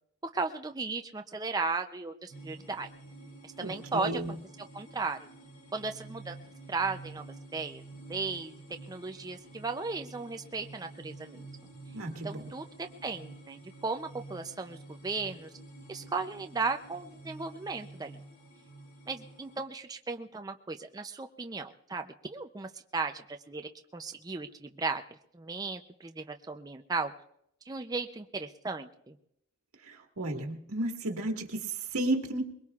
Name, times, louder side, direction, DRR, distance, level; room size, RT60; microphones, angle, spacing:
voice 1, 0.3-2.9 3.6-4.2 4.7-5.2 5.7-6.4 6.7-7.2 7.5-7.8 8.1-8.5 8.9-11.5 12.2-15.5 15.9-18.2 19.1-25.0 25.3-27.1 27.7-29.2, right 4 dB, 15° right, 6 dB, 0.5 m, -36 dB
sound 1, 2.3-19.6, right 2 dB, 90° left, 1.8 m, -50 dB
voice 2, 3.6-4.3 11.9-12.5 29.8-32.4, right 1 dB, 90° right, 2 dB, 1.8 m, -33 dB
22.5 x 21.5 x 2.4 m, 0.75 s
head